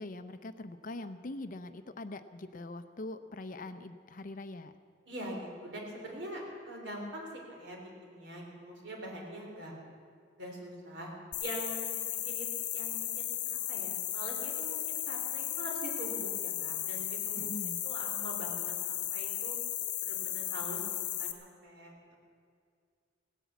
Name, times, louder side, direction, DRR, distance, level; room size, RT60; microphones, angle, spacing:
voice 1, 0.0-4.7 17.4-17.8, left 2 dB, 50° left, 10 dB, 0.7 m, -43 dB
voice 2, 5.1-9.7 10.4-11.1 11.4-12.5 12.7-19.6 20.0-22.2, right 1 dB, 75° right, -1 dB, 3.8 m, -44 dB
sound 1, 11.3-21.3, left 12 dB, 70° left, 1.2 m, -35 dB
17.0 x 10.0 x 8.3 m, 2.2 s
head